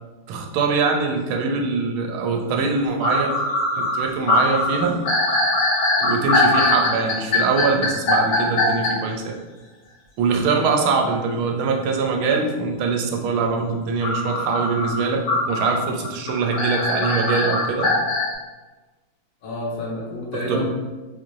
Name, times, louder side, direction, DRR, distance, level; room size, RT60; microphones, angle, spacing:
voice 1, 0.3-3.3 3.8-5.0 6.0-9.4 10.2-17.9 20.3-20.7, right 4 dB, 90° right, 2 dB, 1.4 m, -23 dB
sound 1, 2.6-2.7 3.0-8.9 14.0-18.3, left 2 dB, 85° left, 0.6 m, -21 dB
voice 2, 19.4-20.7, left 1 dB, 60° left, -2 dB, 1.0 m, -29 dB
4.2 x 2.5 x 3.0 m, 1.2 s
omnidirectional pair, 2.2 m